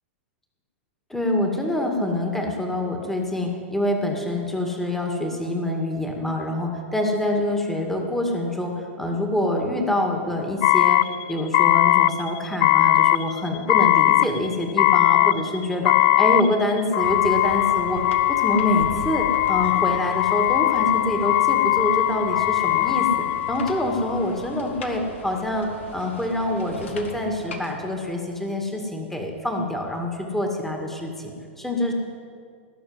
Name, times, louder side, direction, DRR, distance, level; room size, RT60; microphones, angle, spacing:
voice 1, 1.1-11.0 11.3-18.0 18.3-31.9, left 1 dB, 5° left, 2 dB, 2.0 m, -26 dB
sound 1, 10.6-24.2, left 15 dB, 55° left, 0.4 m, -20 dB
sound 2, 17.0-28.4, left 2 dB, 75° left, 1.9 m, -40 dB
19.0 x 6.7 x 9.5 m, 2.3 s
hypercardioid pair, 110°, 7 cm